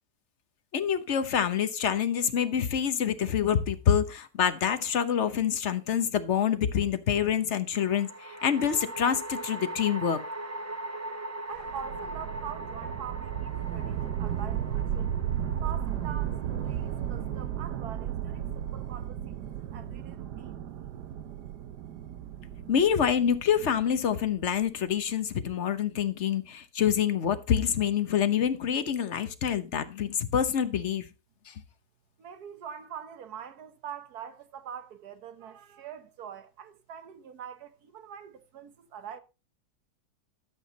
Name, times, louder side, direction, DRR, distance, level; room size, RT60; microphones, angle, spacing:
voice 1, 0.7-10.2 22.7-31.0 31.5-31.6, left 8 dB, 50° left, 1.1 m, -26 dB
sound 1, 4.6-5.3 7.7-19.1, right 1 dB, 15° right, 0.5 m, -41 dB
voice 2, 11.5-15.2 15.6-20.6 32.2-39.2, right 8 dB, 70° right, 1.6 m, -44 dB
sound 2, 11.6-24.6, right 10 dB, 90° right, 1.4 m, -34 dB
12.5 x 7.7 x 4.0 m
omnidirectional pair, 1.7 m